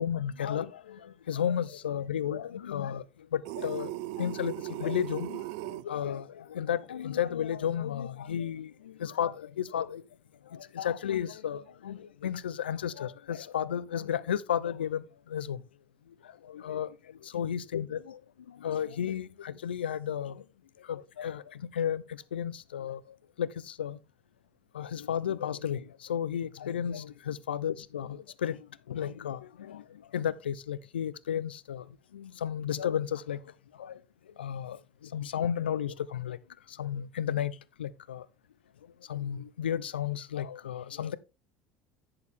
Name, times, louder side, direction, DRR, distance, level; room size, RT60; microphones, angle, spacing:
voice 1, 0.0-3.0 3.3-3.9 4.2-10.0 10.5-15.0 15.3-15.6 16.5-16.9 17.2-18.2 18.6-20.4 20.9-21.4 21.7-22.0 22.3-23.0 23.4-24.0 24.7-28.6 28.9-29.8 30.1-31.8 32.1-33.4 33.8-33.9 34.4-34.8 35.1-36.4 36.8-38.2 39.1-41.2, left 9 dB, 85° left, 0.6 m, -33 dB
sound 1, 3.4-5.8, right 18 dB, 65° right, 0.4 m, -37 dB
11.0 x 6.8 x 3.5 m
hypercardioid pair, 75°, 5 cm